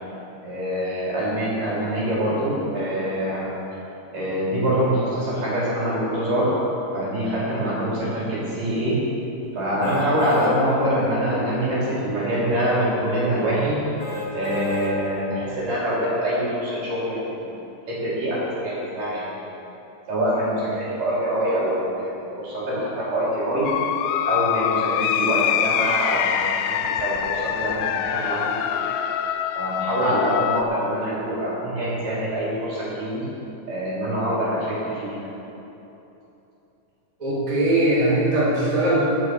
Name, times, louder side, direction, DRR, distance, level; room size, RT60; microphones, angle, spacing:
voice 1, 0.4-3.5 4.1-6.5 6.9-9.0 9.5-13.8 14.3-17.4 17.9-19.3 20.1-23.7 24.3-26.4 26.7-28.4 28.7-28.8 29.5-33.2 33.7-35.3, equal, 60° right, -8 dB, 4.8 m, -24 dB
sound 1, 9.8-10.5 11.1-11.2 14.0-14.9 15.5-15.6, left 3 dB, 55° left, 3.0 m, -32 dB
sound 2, 23.6-30.6, left 10 dB, 90° left, 2.5 m, -24 dB
voice 2, 37.2-39.0, right 1 dB, 10° right, -8 dB, 2.2 m, -20 dB
16.0 x 7.7 x 4.7 m, 3.0 s
omnidirectional pair, 4.5 m